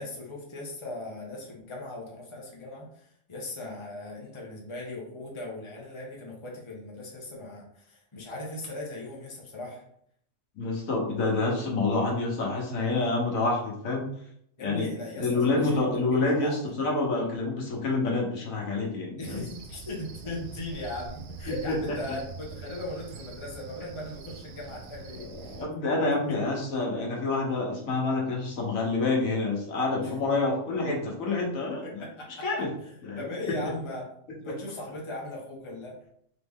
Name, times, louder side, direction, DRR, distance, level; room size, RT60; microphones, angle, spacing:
voice 1, 0.0-9.8 14.6-16.6 19.2-25.7 26.1-26.2 30.0-30.1 31.8-32.5 32.8-32.9 33.2-34.0 34.4-36.0, left 2 dB, 25° left, -3 dB, 0.9 m, -38 dB
voice 2, 10.6-14.1 14.6-14.9 15.2-19.4 21.7-21.8 25.1-25.3 25.5-32.0 32.4-32.7 33.0-33.3, left 3 dB, 80° left, -1 dB, 1.5 m, -27 dB
Cricket, 19.2-25.7, right 5 dB, 75° right, 1.0 m, -44 dB
3.8 x 3.1 x 3.5 m, 0.70 s
omnidirectional pair, 1.4 m